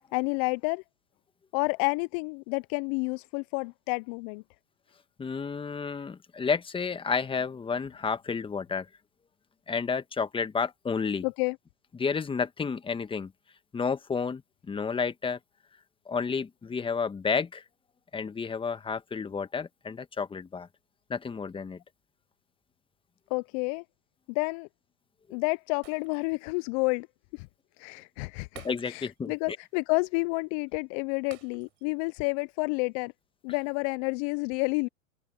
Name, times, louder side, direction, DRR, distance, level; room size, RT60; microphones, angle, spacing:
voice 1, 0.1-0.8 1.5-4.4 11.2-11.6 23.3-23.8 24.3-24.7 25.3-27.1 27.3-27.5 27.8-33.1 33.4-34.9, left 30 dB, 30° left, 0.4 m, -30 dB
voice 2, 5.2-8.9 9.7-11.3 11.9-13.3 13.7-15.4 16.0-17.6 18.1-20.7 21.1-21.8 28.5-29.6, left 5 dB, 10° left, 1.6 m, -31 dB
Shatter, 25.8-26.5 26.9-27.0 28.5-29.3 29.6-29.8 31.3-32.0 32.4-32.5, right 25 dB, 55° right, 6.2 m, -53 dB
open air
hypercardioid pair, 110°, 41 cm